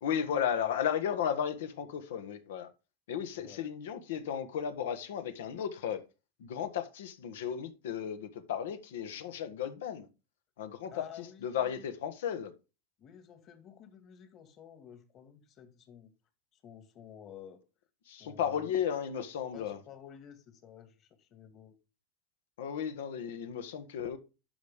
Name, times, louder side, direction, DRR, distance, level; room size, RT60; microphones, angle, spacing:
voice 1, 0.0-2.7 3.1-6.0 6.4-10.1 10.6-12.5 18.1-19.8 22.6-24.2, left 8 dB, 85° left, 1.4 m, -34 dB
voice 2, 3.3-3.7 10.9-11.8 13.0-16.1 16.5-17.6 18.2-18.8 19.5-21.8, left 9 dB, 40° left, 2.0 m, -52 dB
11.5 x 5.2 x 3.6 m
supercardioid pair, 125°, 0 cm